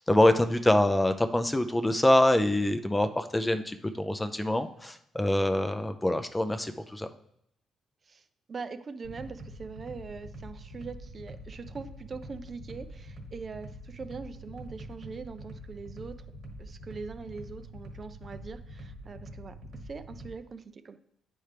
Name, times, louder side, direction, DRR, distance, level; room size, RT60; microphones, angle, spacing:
voice 1, 0.0-7.1, left 1 dB, 10° left, 8 dB, 0.5 m, -25 dB
voice 2, 8.1-16.2 16.6-19.6 19.8-21.0, right 4 dB, 40° right, 10 dB, 0.5 m, -42 dB
sound 1, 9.0-20.3, equal, 70° right, 1.3 m, -45 dB
9.3 x 4.4 x 3.3 m, 0.74 s
cardioid pair, 90°, 0 cm